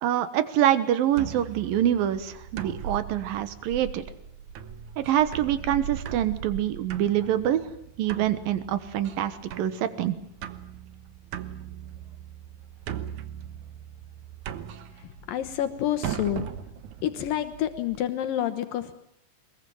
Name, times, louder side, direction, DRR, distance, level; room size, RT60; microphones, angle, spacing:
voice 1, 0.0-4.0 5.0-7.7 8.0-10.2, right 11 dB, 90° right, 12 dB, 3.0 m, -25 dB
sound 1, 1.1-18.0, right 9 dB, 65° right, 2.4 m, -39 dB
voice 2, 14.9-16.5 17.0-18.9, left 11 dB, 80° left, 10 dB, 2.8 m, -29 dB
23.0 x 21.5 x 9.2 m, 0.69 s
omnidirectional pair, 4.0 m